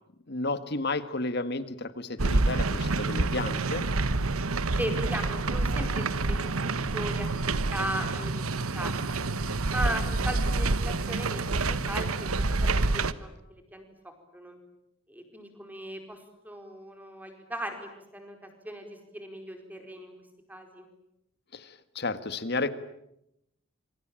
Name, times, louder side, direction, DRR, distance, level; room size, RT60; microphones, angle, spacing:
voice 1, 0.3-3.8 21.5-22.7, left 3 dB, 50° left, 12 dB, 1.7 m, -32 dB
sound 1, 2.2-13.1, right 3 dB, 85° right, 1.2 m, -28 dB
voice 2, 4.8-9.2 9.7-12.3 12.5-14.6 15.1-16.2 16.4-20.1 20.5-20.9, right 1 dB, 10° right, 5 dB, 4.7 m, -38 dB
27.0 x 25.0 x 8.9 m, 0.82 s
head